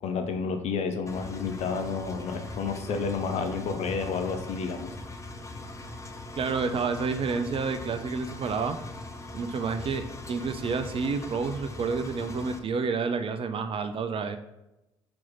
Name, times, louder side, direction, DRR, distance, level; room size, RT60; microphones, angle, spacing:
voice 1, 0.0-4.9, left 5 dB, 55° left, 6 dB, 0.8 m, -30 dB
Engine, 1.1-12.6, left 2 dB, 20° left, 0.9 m, -41 dB
voice 2, 6.4-8.8 9.3-14.4, right 5 dB, 40° right, 9 dB, 0.6 m, -29 dB
4.6 x 4.3 x 5.6 m, 0.92 s
figure-of-eight pair, 50°, 14 cm